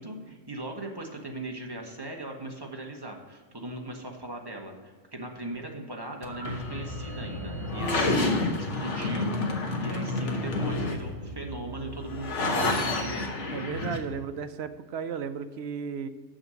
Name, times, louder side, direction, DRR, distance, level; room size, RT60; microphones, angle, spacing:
voice 1, 0.0-13.3, right 1 dB, 20° right, 1 dB, 1.2 m, -39 dB
sound 1, 6.2-14.0, left 2 dB, 90° left, 1.4 m, -30 dB
voice 2, 13.5-16.1, right 6 dB, 65° right, 10 dB, 0.8 m, -34 dB
7.0 x 6.4 x 6.3 m, 1.5 s
omnidirectional pair, 1.2 m